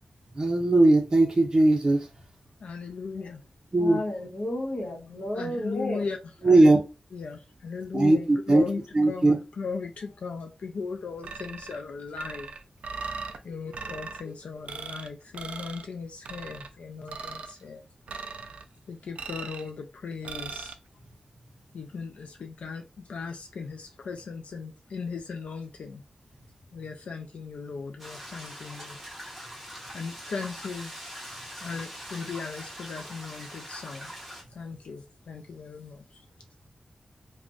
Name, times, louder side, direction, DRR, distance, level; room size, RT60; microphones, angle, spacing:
voice 1, 0.4-2.1 3.7-4.0 6.4-6.8 7.9-8.6 8.9-9.4, right 2 dB, 30° right, 0.5 m, -19 dB
voice 2, 2.6-3.4 5.3-6.2 6.5-6.8 7.1-8.8 9.1-12.5 13.5-17.8 18.9-20.7 21.7-26.0 26.7-29.0 29.9-30.9 31.6-34.1 34.5-36.0, left 5 dB, 85° left, 0.3 m, -37 dB
voice 3, 3.8-6.0, left 1 dB, 55° left, 1.1 m, -32 dB
sound 1, 11.2-11.8 12.2-13.4 13.7-14.2 14.7-15.1 15.3-15.9 16.2-16.7 17.1-17.5 18.1-18.6 19.2-19.7 20.2-20.7, right 5 dB, 90° right, 0.3 m, -39 dB
sound 2, 28.0-34.4, equal, ahead, 0.9 m, -42 dB
2.5 x 2.1 x 3.5 m
wide cardioid pair, 140°, 2 cm